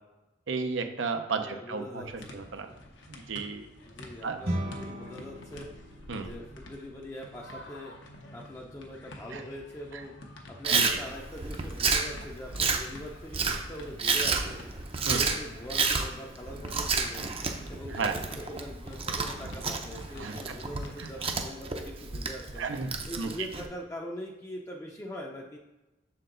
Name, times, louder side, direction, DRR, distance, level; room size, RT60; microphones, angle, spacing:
voice 1, 0.5-2.7 3.1-3.7 4.2-4.4 6.1-6.3 9.3-9.4 9.9-10.0 10.7-11.0 15.1-15.2 17.9-18.2 20.2-20.6 21.0-21.1 22.6-23.3, right 4 dB, 85° right, 6 dB, 0.7 m, -33 dB
voice 2, 1.4-2.4 3.9-5.7 6.2-7.9 8.3-10.1 10.5-14.6 15.0-17.3 17.7-22.7 23.1-25.6, equal, 15° left, -1 dB, 0.5 m, -42 dB
Day Playing Basketball, 2.0-21.4, left 1 dB, 75° left, 0.9 m, -50 dB
sound 1, 4.4-13.9, right 1 dB, 60° right, 1.2 m, -43 dB
Chewing mastication, 10.6-23.7, right 4 dB, 30° right, 0.6 m, -31 dB
6.5 x 4.5 x 3.8 m, 1.0 s
head